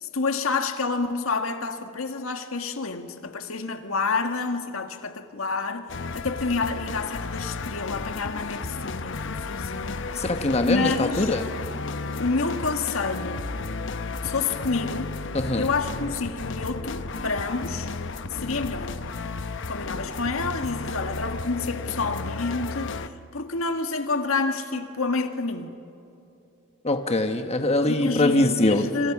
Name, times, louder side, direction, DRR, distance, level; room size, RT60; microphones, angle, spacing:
voice 1, 0.0-10.3 10.7-11.3 12.2-13.4 14.2-15.2 15.5-17.9 18.3-19.0 19.7-23.0 23.3-25.7 27.9-29.1, left 4 dB, 80° left, 1.7 m, -28 dB
sound 1, 5.9-23.1, left 3 dB, 65° left, 0.9 m, -33 dB
voice 2, 10.1-11.5 15.3-15.6 26.8-28.8, left 2 dB, 30° left, 1.2 m, -23 dB
28.0 x 27.0 x 6.1 m
head